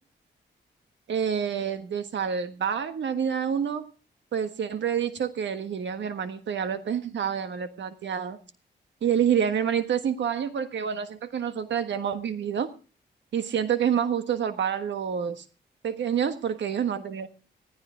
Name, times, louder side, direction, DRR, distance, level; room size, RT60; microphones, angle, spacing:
voice 1, 1.1-3.9 4.3-8.4 9.0-12.7 13.3-15.4 15.8-17.3, right 8 dB, 75° right, 10 dB, 1.5 m, -28 dB
16.5 x 15.0 x 3.8 m, 0.36 s
cardioid pair, 65°, 19 cm